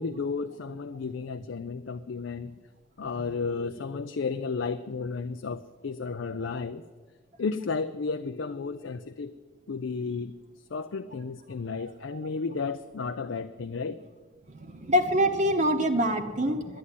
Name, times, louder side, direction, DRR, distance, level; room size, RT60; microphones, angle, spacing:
voice 1, 0.0-2.5 3.0-6.8 7.4-9.3 9.7-10.3 10.7-14.0, left 4 dB, 70° left, 9 dB, 0.5 m, -33 dB
voice 2, 14.6-16.8, equal, 35° right, 5 dB, 0.8 m, -25 dB
11.0 x 10.0 x 8.4 m, 1.4 s
head